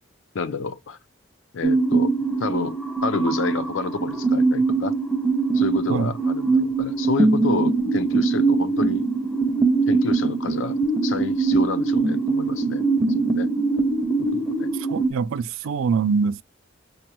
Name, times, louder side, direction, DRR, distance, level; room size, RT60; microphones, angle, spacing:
voice 1, 0.3-1.0 1.5-2.1 2.4-4.9 5.5-9.1 9.9-10.8 11.0-12.8 13.2-13.5 14.2-14.7 15.0-15.1, left 4 dB, 75° left, 0.5 m, -29 dB
sound 1, 1.6-15.1, right 3 dB, ahead, 0.5 m, -22 dB
voice 2, 14.7-16.4, right 5 dB, 85° right, 0.3 m, -24 dB
5.0 x 2.2 x 2.8 m
head